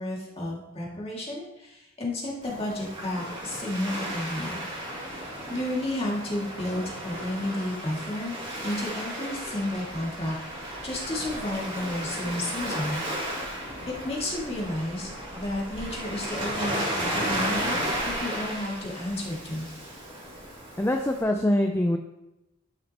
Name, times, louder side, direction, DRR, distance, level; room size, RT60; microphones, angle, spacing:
voice 1, 0.0-4.6 5.0-8.3 8.6-10.4 10.8-13.0 13.9-19.6, left 1 dB, 30° left, -3 dB, 2.2 m, -32 dB
Waves surf, 2.4-21.2, right 1 dB, 25° right, 2.8 m, -34 dB
voice 2, 20.8-22.0, left 1 dB, 10° left, 4 dB, 0.4 m, -24 dB
11.5 x 6.2 x 2.9 m, 0.91 s
head